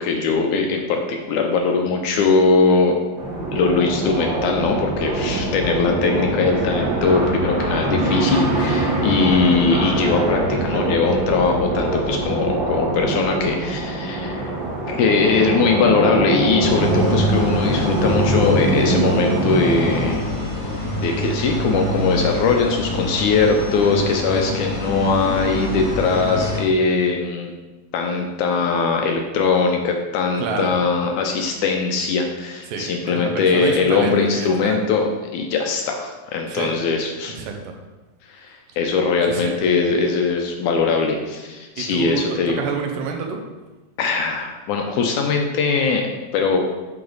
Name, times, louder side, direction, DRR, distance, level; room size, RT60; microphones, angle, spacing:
voice 1, 0.0-3.0 3.5-14.5 14.9-20.2 21.0-27.5 27.9-37.4 38.3-42.6 44.0-46.7, left 4 dB, 75° left, 3 dB, 1.9 m, -20 dB
sound 1, 3.2-20.1, right 2 dB, 55° right, 1.4 m, -23 dB
sound 2, 16.6-26.6, equal, 10° left, 0.9 m, -26 dB
voice 2, 30.4-30.7 32.7-34.8 36.5-36.7 37.4-37.8 39.3-39.5 41.8-43.4, right 5 dB, 80° right, 3 dB, 2.4 m, -28 dB
10.0 x 3.9 x 3.9 m, 1.2 s
omnidirectional pair, 3.9 m